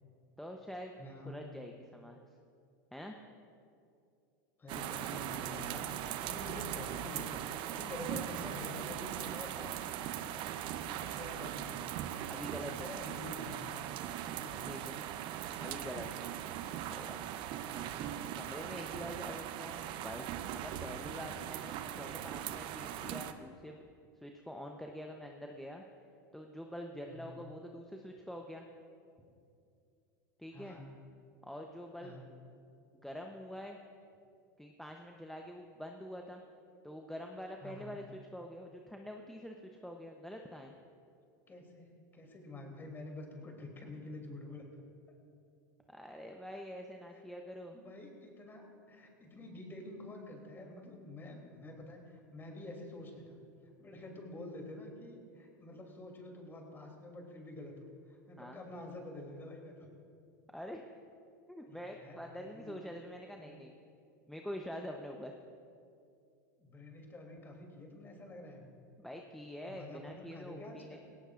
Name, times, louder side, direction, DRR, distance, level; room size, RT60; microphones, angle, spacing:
voice 1, 0.4-1.0 1.3-2.2 2.9-3.2 12.3-12.9 14.7-15.0 15.6-16.2 16.9-17.2 18.3-23.8 24.2-25.8 26.3-28.7 30.4-30.8 31.4-32.2 33.0-33.8 34.6-36.4 36.8-38.0 38.3-39.6 39.8-40.7 45.9-47.8 58.4-58.6 60.5-60.9 61.5-63.7 64.3-65.3 69.0-71.0, equal, 5° left, 2 dB, 0.8 m, -45 dB
voice 2, 1.0-1.4 4.6-5.9 6.2-10.0 10.7-11.9 12.6-13.7 14.3-14.9 17.7-18.0 27.1-27.4 30.5-30.9 32.0-32.3 37.6-38.0 41.5-44.8 47.7-53.4 53.8-59.9 61.7-62.8 63.4-63.6 66.6-68.8 69.7-71.0, left 1 dB, 20° left, 2 dB, 3.0 m, -48 dB
sound 1, 4.7-23.3, right 11 dB, 50° right, 0.7 m, -40 dB
17.5 x 17.5 x 2.5 m, 2.5 s
hypercardioid pair, 105°, 10 cm